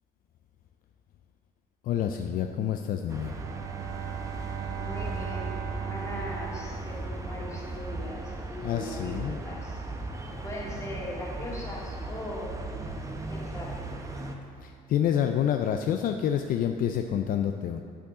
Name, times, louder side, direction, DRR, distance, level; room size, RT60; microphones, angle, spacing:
voice 1, 1.8-3.3 8.6-9.4 14.6-17.8, left 9 dB, 55° left, 6 dB, 0.4 m, -28 dB
Bowed string instrument, 3.0-7.9, right 9 dB, 75° right, 0.7 m, -38 dB
sound 1, 3.1-14.3, right 2 dB, 20° right, 0.8 m, -37 dB
voice 2, 4.8-9.8 10.4-12.5 13.3-13.8, left 1 dB, 20° left, -4 dB, 2.1 m, -40 dB
8.5 x 8.5 x 3.7 m, 2.3 s
cardioid pair, 110°, 17 cm